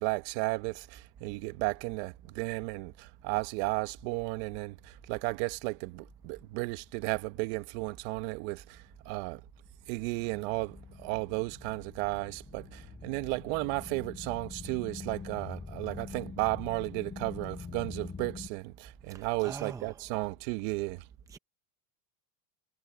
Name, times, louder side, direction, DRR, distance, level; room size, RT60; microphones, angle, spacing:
voice 1, 0.0-9.4 9.9-21.1, right 23 dB, 55° right, 1.2 m, -34 dB
sound 1, 10.0-18.5, left 5 dB, 15° left, 2.5 m, -45 dB
voice 2, 19.1-20.0 21.3-21.4, right 5 dB, 5° right, 0.7 m, -43 dB
supercardioid pair, 150°, 48 cm